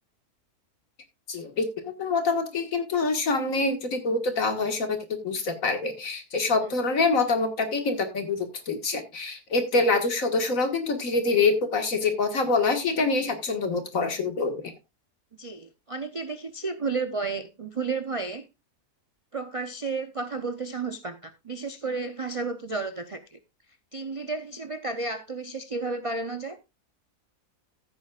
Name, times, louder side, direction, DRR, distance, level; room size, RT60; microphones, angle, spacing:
voice 1, 1.3-5.0 5.2-14.7, left 3 dB, 60° left, 2.0 m, -25 dB
voice 2, 15.4-18.5 19.3-23.4 23.9-26.6, right 4 dB, 50° right, 0.4 m, -32 dB
14.5 x 8.6 x 2.4 m
omnidirectional pair, 1.6 m